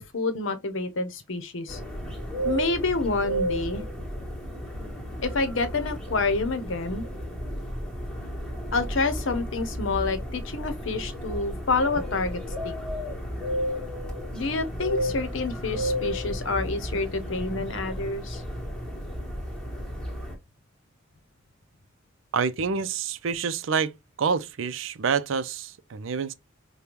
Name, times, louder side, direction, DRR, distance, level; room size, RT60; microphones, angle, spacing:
voice 1, 0.0-1.8 2.4-3.8 5.2-7.0 8.7-12.7 14.3-18.4, left 3 dB, 65° left, 0.8 m, -28 dB
sound 1, 1.7-20.3, equal, 5° left, 1.3 m, -33 dB
voice 2, 22.3-23.9 24.2-26.3, right 6 dB, 70° right, 0.5 m, -27 dB
5.1 x 2.2 x 2.9 m
head